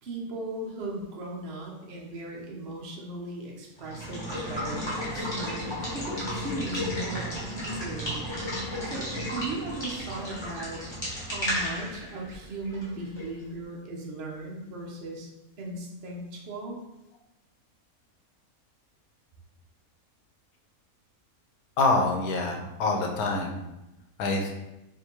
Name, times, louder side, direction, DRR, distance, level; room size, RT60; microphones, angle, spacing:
voice 1, 0.0-8.2 8.8-15.3 15.6-16.8, right 2 dB, 50° right, -2 dB, 0.9 m, -37 dB
Water / Water tap faucet / Liquid, 3.8-13.4, equal, 20° left, 1.3 m, -33 dB
voice 2, 21.8-23.6 24.2-24.5, left 3 dB, 90° left, 2 dB, 1.2 m, -26 dB
4.8 x 2.6 x 3.0 m, 0.91 s
omnidirectional pair, 1.5 m